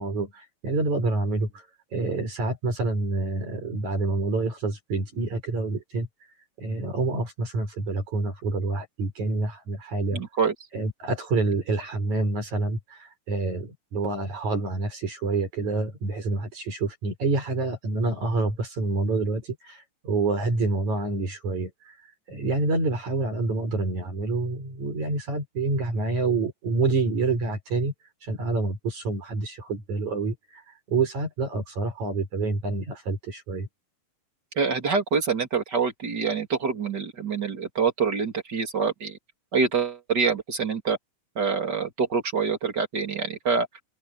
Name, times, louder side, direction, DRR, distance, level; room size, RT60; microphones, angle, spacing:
voice 1, 0.0-1.6 1.9-6.1 6.6-10.2 10.7-22.0 22.3-27.9 28.2-33.7, right 3 dB, 70° right, 7.5 m, -27 dB
voice 2, 10.1-10.5 34.6-39.2 39.5-41.0 41.4-43.7, right 5 dB, 35° right, 3.2 m, -26 dB
open air
omnidirectional pair, 3.4 m